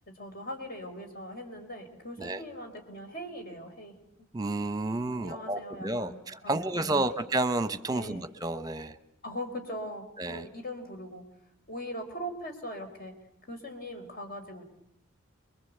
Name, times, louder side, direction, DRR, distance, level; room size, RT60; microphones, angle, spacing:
voice 1, 0.1-4.3 5.1-7.2 7.9-8.3 9.2-11.2 11.7-13.1 13.4-14.6, equal, 45° left, 5 dB, 4.2 m, -41 dB
voice 2, 4.3-8.9 10.2-10.5, right 2 dB, 20° right, 11 dB, 1.1 m, -31 dB
28.5 x 23.0 x 8.1 m, 0.75 s
head